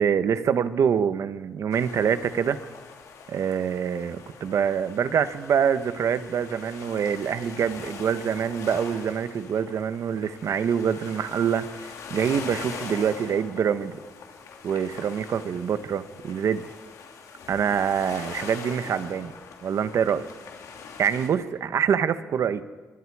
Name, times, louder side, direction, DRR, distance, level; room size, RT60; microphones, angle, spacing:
voice 1, 0.0-2.6 3.3-11.7 12.1-14.0 14.6-16.6 17.5-19.3 19.6-20.3 21.0-22.6, right 7 dB, 65° right, 11 dB, 1.2 m, -25 dB
sound 1, 1.7-21.3, left 5 dB, 85° left, 3.0 m, -42 dB
26.0 x 23.0 x 4.9 m, 1.3 s
cardioid pair, 105°, 5 cm